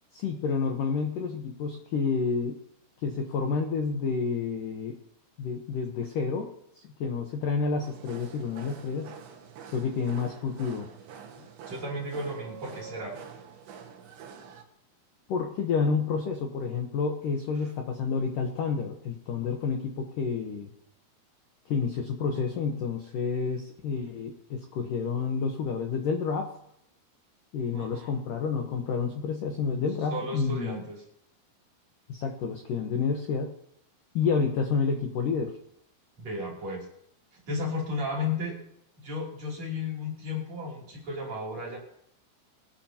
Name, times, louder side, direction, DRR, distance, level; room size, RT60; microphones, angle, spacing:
voice 1, 0.1-2.6 3.0-5.0 5.4-6.5 6.8-9.1 9.7-10.9 15.3-20.7 21.7-26.5 27.5-30.8 32.1-33.5 34.1-35.5, left 5 dB, 80° left, 3 dB, 1.9 m, -29 dB
sound 1, 7.8-14.6, right 7 dB, 65° right, 3.6 m, -46 dB
voice 2, 11.4-13.2 27.7-28.1 30.1-31.0 36.2-36.9 37.3-38.6 39.0-41.8, left 2 dB, 35° right, -3 dB, 3.8 m, -34 dB
23.0 x 11.5 x 3.0 m, 0.73 s
omnidirectional pair, 5.8 m